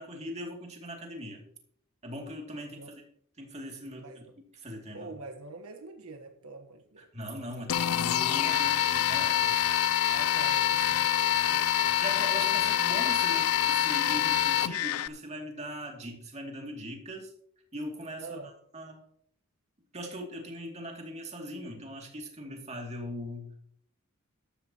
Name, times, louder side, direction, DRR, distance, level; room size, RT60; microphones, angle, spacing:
voice 1, 0.0-1.4 2.0-2.9 3.4-4.3 4.5-5.1 7.0-9.6 12.0-17.3 17.7-19.0 19.9-23.7, equal, 30° right, 2.5 m, -40 dB
voice 2, 4.0-4.3 4.9-7.1 8.3-8.9 10.1-12.0 18.2-18.5, right 3 dB, 90° right, 1.2 m, -45 dB
sound 1, 7.7-15.1, left 10 dB, 90° left, 0.5 m, -26 dB
13.0 x 13.0 x 2.9 m
head